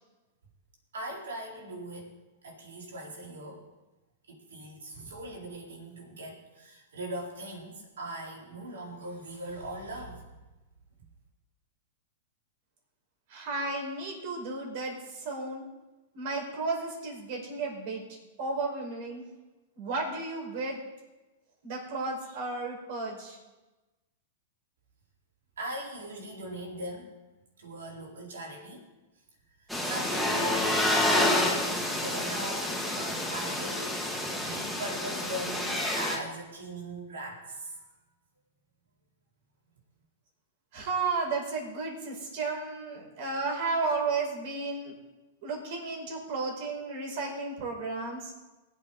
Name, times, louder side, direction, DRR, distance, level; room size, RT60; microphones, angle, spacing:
voice 1, 0.9-2.1 2.4-3.6 4.3-10.3 25.6-27.1 27.6-28.9 29.6-37.9, right 1 dB, 90° right, -2 dB, 4.1 m, -40 dB
voice 2, 13.3-15.6 16.1-18.0 18.4-19.2 19.8-20.8 21.6-23.4 40.7-44.9 45.4-48.3, right 3 dB, 60° right, 0 dB, 5.1 m, -33 dB
sound 1, 29.7-36.2, left 1 dB, 5° right, 2.6 m, -29 dB
21.0 x 8.4 x 4.0 m, 1.1 s
hypercardioid pair, 125°, 0 cm